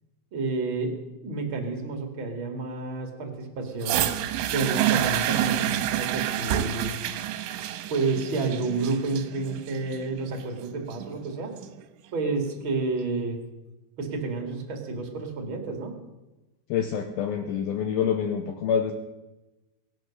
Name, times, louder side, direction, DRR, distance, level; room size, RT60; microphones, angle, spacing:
voice 1, 0.3-1.0 1.2-4.1 4.5-6.9 7.9-11.5 12.1-13.4 14.0-16.0, right 3 dB, 40° right, 4 dB, 2.0 m, -30 dB
sound 1, 3.8-11.8 12.6-12.7, right 12 dB, 80° right, 3.0 m, -28 dB
voice 2, 16.7-18.9, left 8 dB, 90° left, 6 dB, 2.1 m, -26 dB
22.5 x 9.2 x 6.5 m, 1.0 s
omnidirectional pair, 5.5 m